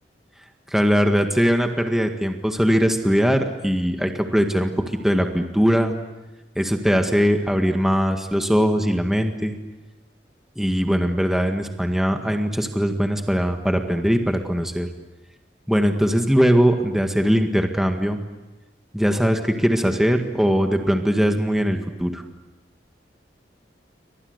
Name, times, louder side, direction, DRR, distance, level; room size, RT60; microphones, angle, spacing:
voice 1, 0.7-4.7 5.0-5.9 6.5-9.6 10.5-14.9 15.7-18.2 18.9-22.2, equal, ahead, 4 dB, 1.9 m, -20 dB
30.0 x 24.5 x 8.1 m, 1.1 s
head